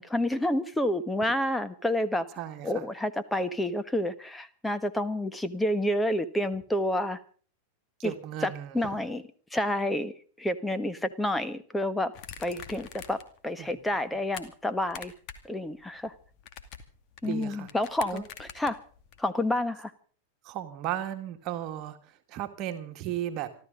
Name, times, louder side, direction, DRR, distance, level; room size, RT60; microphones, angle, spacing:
voice 1, 0.1-2.3 2.6-7.2 8.0-8.1 8.4-9.2 9.5-10.1 10.4-12.1 12.4-15.1 15.4-16.1 17.2-18.8 19.2-19.9, left 1 dB, 5° left, 11 dB, 1.5 m, -29 dB
voice 2, 2.4-2.9 8.0-9.0 13.6-13.8 17.3-17.7 18.1-18.2 20.4-23.5, right 11 dB, 40° right, 6 dB, 2.0 m, -35 dB
sound 1, 12.1-13.4 13.7-14.4 14.8-15.5 15.8-19.2, left 8 dB, 40° left, 2.3 m, -45 dB
Piano, 17.2-18.2, left 6 dB, 65° left, 5.2 m, -49 dB
27.0 x 13.5 x 3.9 m, 0.41 s
figure-of-eight pair, 90°, 0 cm